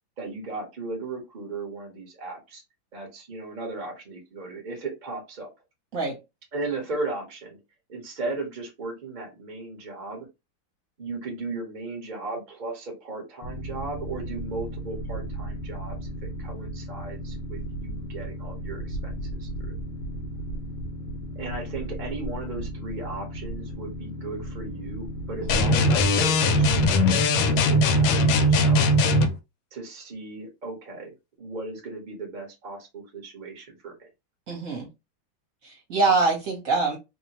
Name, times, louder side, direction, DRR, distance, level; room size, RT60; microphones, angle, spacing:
voice 1, 0.2-2.6 2.9-5.5 6.5-7.6 7.9-10.3 11.0-16.0 16.4-19.8 21.3-28.9 29.7-34.1, right 3 dB, 35° right, 0 dB, 0.7 m, -36 dB
Boat Water vehicle, 13.4-27.2, right 1 dB, 65° left, 1.1 m, -35 dB
sound 1, 25.5-29.3, left 1 dB, 90° left, 1.4 m, -20 dB
voice 2, 34.5-34.9 35.6-37.0, right 3 dB, 50° right, 0 dB, 1.2 m, -24 dB
3.2 x 2.1 x 2.8 m, 0.24 s
omnidirectional pair, 2.1 m